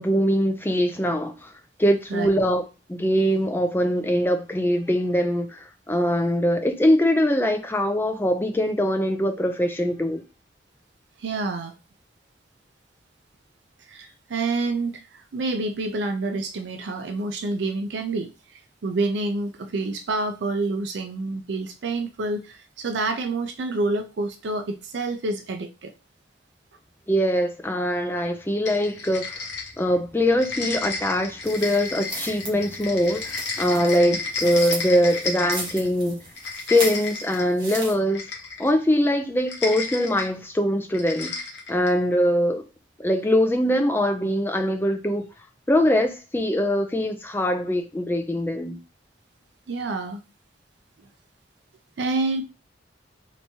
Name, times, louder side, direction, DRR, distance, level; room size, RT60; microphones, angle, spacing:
voice 1, 0.0-1.5 1.8-2.6 2.9-10.2 27.1-29.5 29.8-36.2 36.7-38.3 38.6-41.4 41.7-42.6 43.0-45.2 45.7-48.8, equal, 10° left, 0.4 m, -22 dB
voice 2, 11.2-11.7 13.9-25.9 49.7-50.2 52.0-52.4, right 3 dB, 75° right, 0.4 m, -28 dB
sound 1, 28.7-30.0 30.3-35.9 36.3-37.5 38.1-38.8 39.4-40.3 40.9-42.0, left 4 dB, 75° left, 0.9 m, -32 dB
sound 2, 31.4-37.9, right 2 dB, 25° right, 1.0 m, -37 dB
3.4 x 2.9 x 2.7 m
head